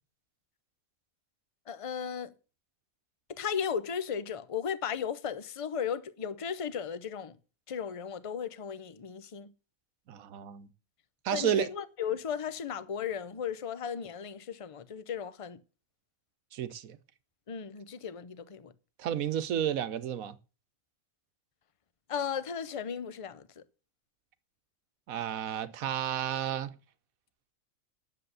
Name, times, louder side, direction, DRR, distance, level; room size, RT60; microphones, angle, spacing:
voice 1, 1.7-2.3 3.3-7.4 7.7-9.5 11.3-15.6 17.5-18.7 22.1-23.6, left 7 dB, 35° left, 0.6 m, -35 dB
voice 2, 10.1-10.7 11.2-11.7 16.5-17.0 19.0-20.3 25.1-26.7, right 10 dB, 85° right, 1.3 m, -31 dB
10.0 x 7.7 x 8.0 m
omnidirectional pair, 1.4 m